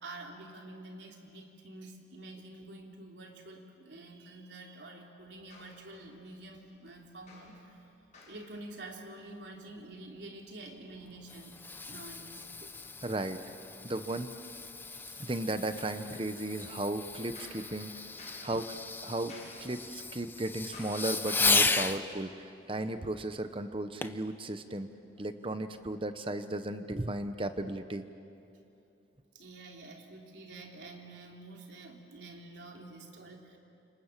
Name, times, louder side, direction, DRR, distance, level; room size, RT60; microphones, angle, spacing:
voice 1, 0.0-7.8 8.3-11.6 11.9-12.5 14.8-15.3 18.3-18.5 29.3-33.6, right 2 dB, 75° right, 1 dB, 3.4 m, -48 dB
sound 1, 5.2-21.0, left 2 dB, 40° left, 7.5 m, -58 dB
Fireworks, 11.0-22.0 24.0-24.3 24.9-25.0, left 3 dB, 10° left, 0.7 m, -35 dB
voice 2, 13.0-13.4 13.8-14.3 15.2-17.9 18.4-18.8 19.0-19.3 19.6-24.9 25.2-28.1, right 1 dB, 30° right, 9 dB, 0.9 m, -35 dB
30.0 x 27.0 x 7.5 m, 2.7 s
head